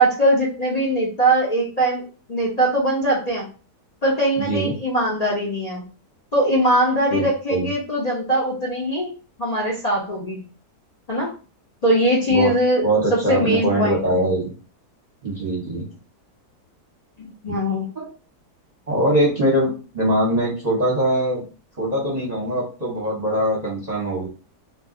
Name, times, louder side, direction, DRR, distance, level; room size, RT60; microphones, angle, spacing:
voice 1, 0.0-2.0 2.3-3.5 4.0-5.8 6.3-9.1 9.4-10.4 11.1-11.3 11.8-14.3 17.2-17.9, right 1 dB, 70° left, -3 dB, 0.3 m, -21 dB
voice 2, 4.4-4.7 7.1-7.7 12.3-12.5 12.8-14.5 15.2-15.8 17.5-17.6 17.9-18.1 18.9-21.4 21.8-24.3, right 1 dB, 35° right, -4 dB, 0.8 m, -22 dB
2.6 x 2.3 x 3.6 m, 0.35 s
omnidirectional pair, 1.8 m